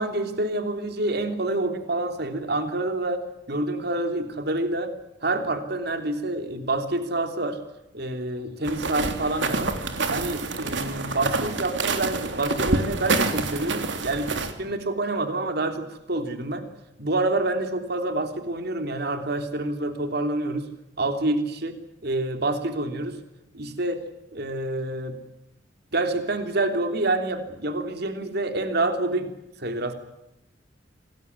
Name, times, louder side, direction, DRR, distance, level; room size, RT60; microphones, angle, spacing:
voice 1, 0.0-4.9 5.2-7.6 7.9-9.7 10.1-16.6 17.0-20.7 21.0-23.2 23.5-24.0 24.3-25.2 25.9-29.3 29.6-29.9, right 2 dB, 60° right, 7 dB, 3.1 m, -27 dB
sound 1, 8.6-14.5, right 3 dB, 85° right, 3.3 m, -27 dB
27.5 x 20.0 x 9.6 m, 0.86 s
head